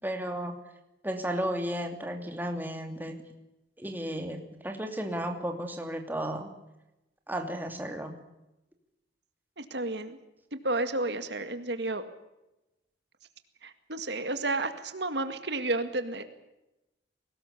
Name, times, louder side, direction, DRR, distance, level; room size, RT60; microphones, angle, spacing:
voice 1, 0.0-0.6 1.0-3.2 3.8-6.5 7.3-8.2, right 1 dB, 10° right, 4 dB, 2.8 m, -33 dB
voice 2, 9.6-10.2 10.5-12.0 13.6-16.2, right 2 dB, 65° right, 9 dB, 2.0 m, -31 dB
23.0 x 19.0 x 8.4 m, 0.94 s
head